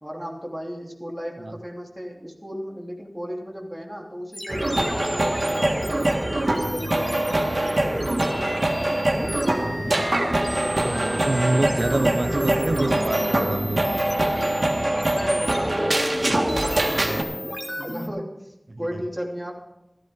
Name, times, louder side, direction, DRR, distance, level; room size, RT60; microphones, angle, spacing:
voice 1, 0.0-6.0 6.5-8.5 14.7-17.3 17.8-19.5, equal, 10° right, -2 dB, 3.1 m, -35 dB
sound 1, 4.3-18.1, equal, 25° left, 2.6 m, -32 dB
sound 2, 4.5-17.2, right 1 dB, 70° right, 1.7 m, -24 dB
voice 2, 10.8-13.9 18.7-19.0, right 2 dB, 85° right, 12 dB, 0.6 m, -27 dB
15.0 x 14.0 x 3.6 m, 0.88 s
wide cardioid pair, 45°, 0 cm